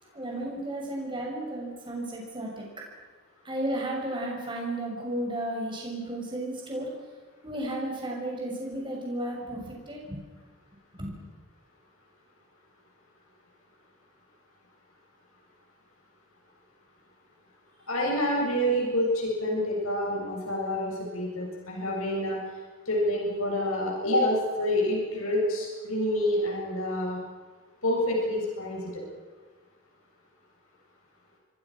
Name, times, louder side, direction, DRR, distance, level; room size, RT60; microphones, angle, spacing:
voice 1, 0.1-2.8 3.4-6.9 7.4-10.2 10.9-11.1, right 1 dB, 20° right, -2 dB, 6.3 m, -33 dB
voice 2, 17.9-22.4 22.9-27.2 27.8-29.0, left 1 dB, 90° left, -1 dB, 7.8 m, -27 dB
27.5 x 22.5 x 6.2 m, 1.4 s
head